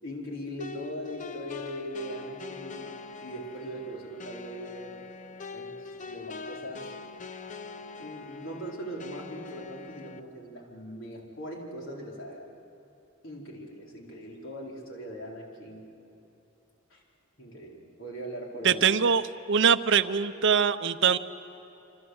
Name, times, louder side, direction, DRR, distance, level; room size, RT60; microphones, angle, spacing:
voice 1, 0.0-2.9 3.2-5.0 5.5-7.0 8.0-12.5 13.2-15.9 16.9-17.0 17.4-18.9, equal, 70° left, -2 dB, 4.7 m, -40 dB
sound 1, 0.6-10.2, left 4 dB, 40° left, 0.9 m, -43 dB
voice 2, 18.6-21.2, right 6 dB, 65° right, 12 dB, 0.8 m, -23 dB
26.5 x 26.0 x 8.0 m, 2.9 s
head